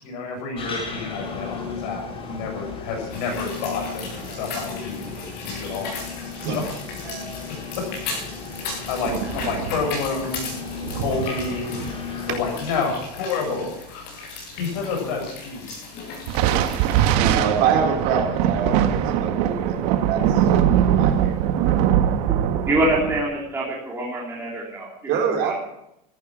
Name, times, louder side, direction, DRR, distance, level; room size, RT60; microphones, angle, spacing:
voice 1, 0.0-6.0 6.4-6.7 7.8-7.9 8.9-10.5 10.9-11.8 12.3-15.7, left 4 dB, 75° left, 2 dB, 7.1 m, -29 dB
sound 1, 0.6-12.6, left 4 dB, 25° left, 3.6 m, -35 dB
sound 2, 3.1-17.2, left 4 dB, 50° left, 7.8 m, -37 dB
voice 2, 7.1-7.4 17.1-19.8 20.1-20.5 21.0-21.5 25.1-25.6, right 6 dB, 50° right, 1 dB, 4.3 m, -25 dB
sound 3, 9.0-12.3 16.3-23.2, right 10 dB, 65° right, 1.5 m, -22 dB
voice 3, 22.6-25.5, right 1 dB, 10° right, -5 dB, 3.5 m, -25 dB
15.0 x 14.0 x 6.2 m, 0.81 s
cardioid pair, 150°, 21 cm